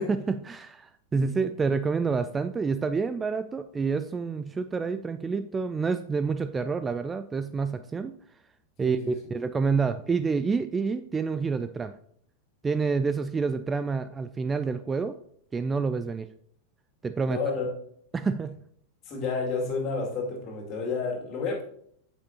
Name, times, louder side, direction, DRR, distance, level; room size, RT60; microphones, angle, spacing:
voice 1, 0.0-8.1 8.8-11.9 12.6-15.2 15.5-16.3 17.0-17.4 18.1-18.6, right 4 dB, 15° right, 11 dB, 0.3 m, -28 dB
voice 2, 8.8-9.1 17.3-17.7 19.1-21.6, left 4 dB, 35° left, -1 dB, 2.4 m, -30 dB
8.6 x 7.4 x 2.8 m, 0.66 s
figure-of-eight pair, 90°, 0 cm